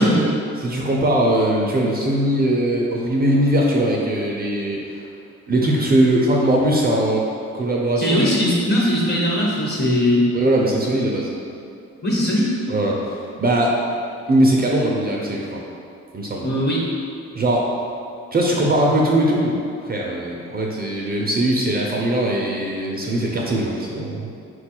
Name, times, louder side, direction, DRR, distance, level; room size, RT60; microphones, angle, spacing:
voice 1, 0.0-5.0 5.5-7.2 7.5-8.3 10.3-11.3 12.7-13.7 14.3-15.6 16.1-16.5 17.3-17.7 18.3-19.6 19.8-24.2, right 1 dB, 30° right, -2 dB, 0.5 m, -20 dB
voice 2, 8.0-10.3 12.0-12.5 16.4-16.8, left 1 dB, 35° left, -4 dB, 1.1 m, -19 dB
4.4 x 2.3 x 4.4 m, 2.5 s
cardioid pair, 90°, 30 cm